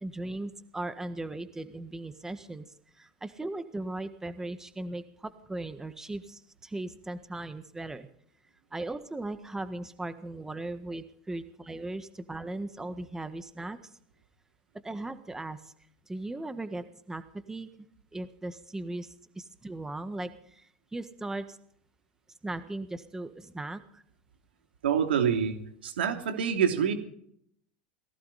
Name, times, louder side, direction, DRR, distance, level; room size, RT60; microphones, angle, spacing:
voice 1, 0.0-2.6 3.0-8.1 8.7-13.8 14.8-15.6 16.1-17.2 17.5-17.7 18.1-19.1 19.3-20.6 20.9-21.6 22.4-24.0, right 2 dB, 10° right, 10 dB, 1.6 m, -38 dB
voice 2, 24.8-25.6 25.8-26.9, right 8 dB, 90° right, 5 dB, 3.0 m, -26 dB
18.5 x 16.5 x 4.2 m, 0.67 s
hypercardioid pair, 105°, 5 cm